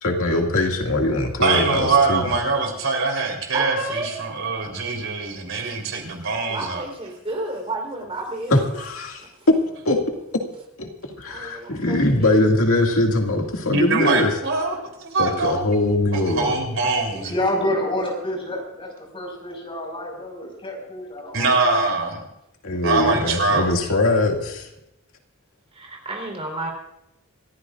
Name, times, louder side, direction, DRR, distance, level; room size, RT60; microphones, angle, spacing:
voice 1, 0.0-2.2 8.5-9.2 9.9-10.0 10.3-10.4 10.8-10.9 11.2-14.3 15.2-16.6 22.6-24.7, left 2 dB, 70° left, 2 dB, 2.3 m, -21 dB
voice 2, 1.4-6.8 13.6-15.6 16.1-17.3 21.3-22.3 22.8-23.7, right 3 dB, 65° right, 2 dB, 3.9 m, -23 dB
voice 3, 3.5-4.2 6.5-8.8 9.2-9.5 11.2-12.5 13.3-13.4 25.7-26.7, right 2 dB, 25° right, 1 dB, 4.1 m, -31 dB
voice 4, 17.1-21.8, left 1 dB, 25° left, 0 dB, 5.7 m, -28 dB
27.0 x 14.5 x 2.6 m, 0.83 s
head